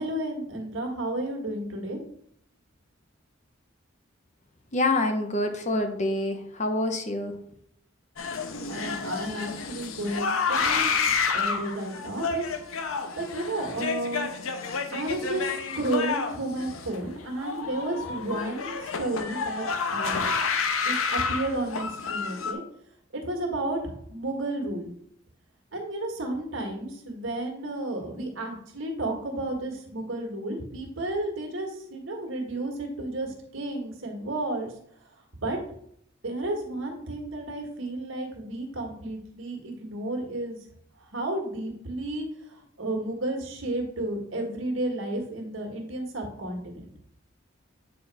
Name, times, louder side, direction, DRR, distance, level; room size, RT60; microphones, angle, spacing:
voice 1, 0.0-2.0 5.7-5.8 8.7-10.9 11.3-12.4 13.2-14.3 14.9-20.2 20.8-22.6 23.1-24.9 25.7-34.7 35.4-35.6 36.2-40.6 41.1-46.8, right 1 dB, 75° right, 2 dB, 1.6 m, -32 dB
voice 2, 4.7-7.3, left 2 dB, 35° left, 6 dB, 0.7 m, -26 dB
sound 1, 8.2-22.5, left 5 dB, 90° left, 0.7 m, -29 dB
8.6 x 3.0 x 4.7 m, 0.68 s
head